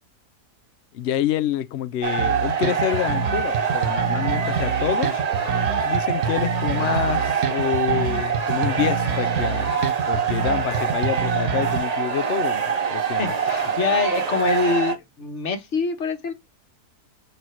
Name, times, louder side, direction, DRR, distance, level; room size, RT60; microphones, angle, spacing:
voice 1, 0.9-5.2 5.8-9.7 10.1-12.6 12.9-13.3, left 11 dB, 80° left, 0.6 m, -27 dB
sound 1, 2.0-15.0, right 6 dB, 40° right, 0.6 m, -25 dB
sound 2, 2.2-11.8, right 6 dB, 65° right, 1.2 m, -27 dB
voice 2, 13.2-16.3, left 4 dB, 50° left, 1.4 m, -25 dB
5.3 x 4.5 x 4.3 m
omnidirectional pair, 1.7 m